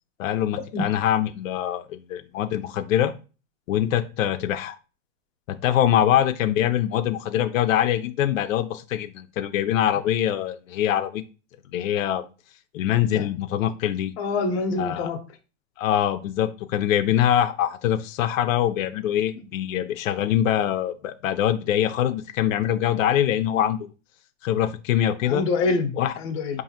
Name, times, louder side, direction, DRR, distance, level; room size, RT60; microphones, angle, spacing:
voice 1, 0.2-3.1 3.7-4.8 5.5-11.2 11.7-12.3 12.7-14.1 14.8-15.1 15.8-23.9 24.4-25.4 26.0-26.1, left 11 dB, 90° left, 7 dB, 0.5 m, -23 dB
voice 2, 14.2-15.2 25.2-26.6, left 3 dB, 50° left, 2 dB, 0.8 m, -26 dB
4.7 x 2.6 x 2.8 m, 0.34 s
supercardioid pair, 145°, 38 cm